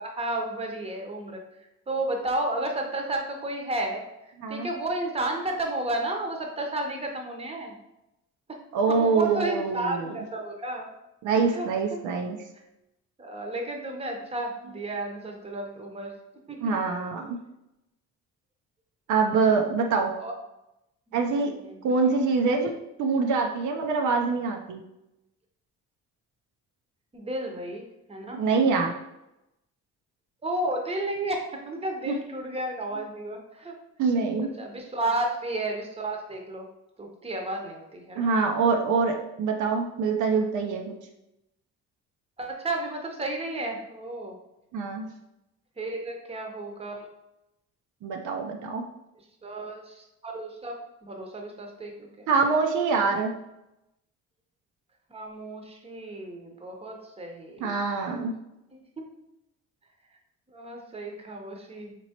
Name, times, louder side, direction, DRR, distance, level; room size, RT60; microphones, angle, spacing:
voice 1, 0.0-1.4 1.9-4.0 4.5-7.8 8.9-10.9 11.4-11.7 13.2-16.1 16.5-16.7 20.2-20.3 21.1-21.2 21.6-22.1 27.1-27.8 28.1-28.4 30.4-33.7 34.6-36.7 37.0-38.3 42.4-44.4 45.8-47.1 49.4-52.2 55.1-57.8 58.7-58.8 60.5-62.0, right 1 dB, 20° right, 2 dB, 0.8 m, -32 dB
voice 2, 4.4-4.7 8.7-10.1 11.2-12.4 16.6-17.4 19.1-20.1 21.1-21.5 21.8-22.7 23.0-24.8 28.3-28.9 32.1-32.2 34.0-34.5 38.2-40.9 44.7-45.1 48.0-48.8 52.3-53.3 57.6-58.4, right 4 dB, 75° right, 3 dB, 0.6 m, -25 dB
4.5 x 2.9 x 2.8 m, 0.89 s
cardioid pair, 90°, 30 cm